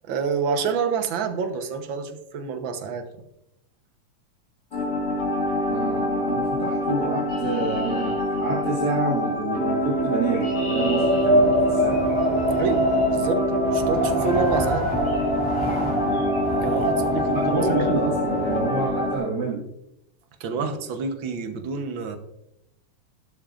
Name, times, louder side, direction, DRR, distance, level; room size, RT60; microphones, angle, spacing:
voice 1, 0.0-3.1 12.6-14.9 16.6-17.7 20.4-22.2, right 5 dB, 60° right, 7 dB, 1.3 m, -28 dB
sound 1, 4.7-19.2, equal, 35° left, 2.9 m, -26 dB
voice 2, 5.7-12.1 16.0-16.4 17.3-19.6 20.6-20.9, right 2 dB, 40° right, -5 dB, 2.0 m, -28 dB
Chirp tweet, 7.3-8.9 9.9-13.1 14.2-14.5 15.0-15.3 15.6-15.8 16.1-16.4, left 2 dB, 65° left, 5.6 m, -42 dB
Wind, 10.5-19.0, equal, 5° left, 2.5 m, -25 dB
14.0 x 12.0 x 2.5 m, 0.83 s
omnidirectional pair, 3.3 m